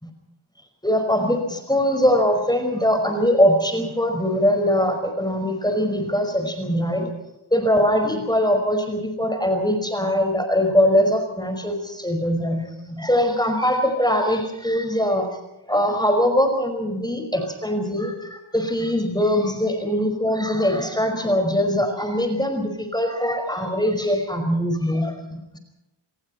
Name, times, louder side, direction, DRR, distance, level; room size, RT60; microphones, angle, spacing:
voice 1, 0.8-7.1 7.5-15.3 15.7-25.6, equal, 10° left, 5 dB, 5.3 m, -22 dB
28.0 x 21.5 x 4.3 m, 0.93 s
wide cardioid pair, 65°, 50 cm